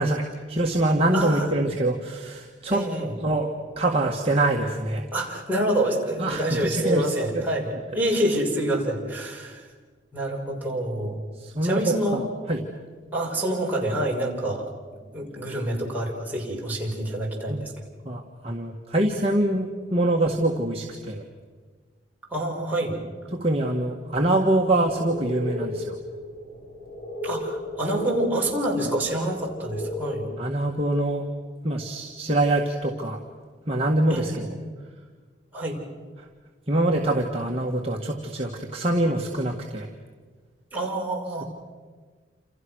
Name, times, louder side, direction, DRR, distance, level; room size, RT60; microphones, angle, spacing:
voice 1, 0.0-2.8 3.2-3.5 3.8-5.1 6.2-7.4 11.4-12.6 17.5-17.6 18.0-21.2 23.3-26.0 30.4-31.2 31.6-33.2 33.7-34.5 36.7-39.9, right 1 dB, 30° right, -1 dB, 1.9 m, -24 dB
voice 2, 1.1-1.5 2.7-3.1 5.1-9.7 10.1-11.2 11.6-12.2 13.1-14.7 15.1-17.7 22.3-23.0 27.2-30.3 34.1-34.5 35.5-35.8 40.7-41.4, right 1 dB, 10° right, -3 dB, 5.9 m, -27 dB
sound 1, 24.9-30.2, left 1 dB, 70° left, 7.9 m, -34 dB
29.0 x 28.0 x 6.4 m, 1.5 s
head